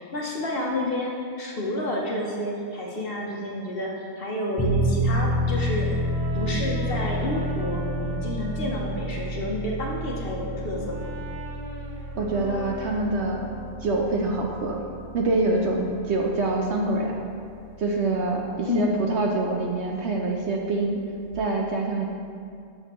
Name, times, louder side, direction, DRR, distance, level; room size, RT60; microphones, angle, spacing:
voice 1, 0.1-5.9 6.3-11.1 18.6-18.9, left 1 dB, 50° left, -2 dB, 0.9 m, -29 dB
Piano, 4.6-21.3, equal, 30° left, 0.4 m, -31 dB
Brass instrument, 5.3-9.2 9.8-13.9, right 1 dB, 40° right, 0.4 m, -41 dB
voice 2, 12.2-13.5 13.8-14.8 15.1-17.1 17.8-21.0 21.3-22.1, right 2 dB, 60° right, 0 dB, 0.8 m, -25 dB
7.7 x 6.6 x 3.0 m, 2.4 s
omnidirectional pair, 1.5 m